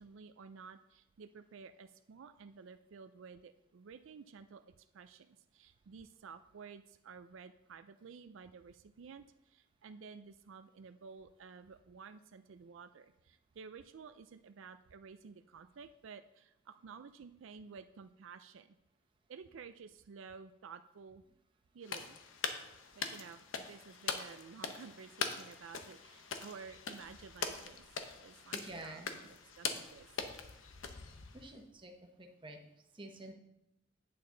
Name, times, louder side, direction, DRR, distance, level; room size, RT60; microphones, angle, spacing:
voice 1, 0.0-4.6 4.9-18.8 19.3-21.2 21.7-22.2 23.0-27.9 28.2-30.1, right 5 dB, 80° right, 10 dB, 0.4 m, -53 dB
sound 1, 21.8-31.6, left 5 dB, 90° left, 0.8 m, -42 dB
voice 2, 28.5-29.1 31.3-32.6 32.9-33.3, right 1 dB, 25° right, 3 dB, 1.0 m, -49 dB
8.7 x 8.5 x 3.8 m, 0.87 s
head